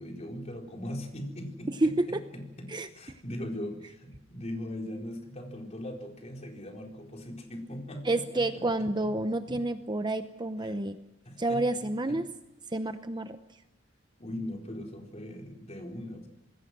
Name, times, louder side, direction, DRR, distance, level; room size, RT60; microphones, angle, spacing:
voice 1, 0.0-1.9 2.3-9.1 9.5-9.6 10.6-10.8 11.2-12.2 14.2-16.3, left 1 dB, 35° left, 1 dB, 4.4 m, -40 dB
voice 2, 8.0-11.0 11.4-12.2 12.7-13.4, right 2 dB, 20° right, 9 dB, 0.8 m, -29 dB
26.5 x 20.5 x 6.1 m, 0.95 s
head